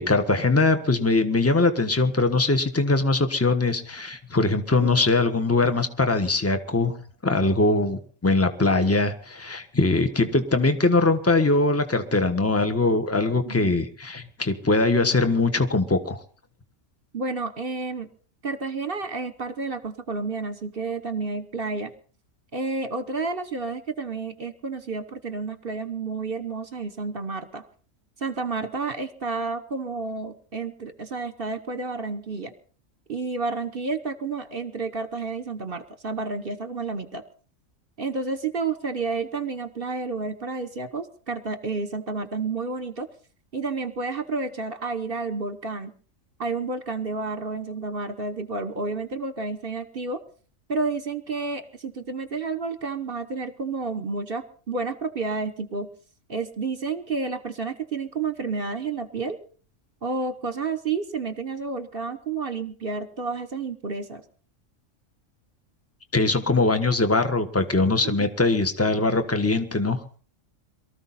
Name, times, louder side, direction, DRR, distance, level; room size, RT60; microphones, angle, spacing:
voice 1, 0.0-7.0 7.2-16.2 66.1-70.2, left 3 dB, 10° left, 8 dB, 1.3 m, -22 dB
voice 2, 17.1-18.1 18.4-21.9 22.5-27.7 28.2-32.5 33.1-37.2 38.0-43.1 43.5-45.9 46.4-50.2 50.7-55.9 56.3-59.4 60.0-64.2 68.0-68.3, right 4 dB, 45° right, 11 dB, 1.2 m, -30 dB
23.0 x 14.0 x 4.2 m, 0.41 s
omnidirectional pair, 1.3 m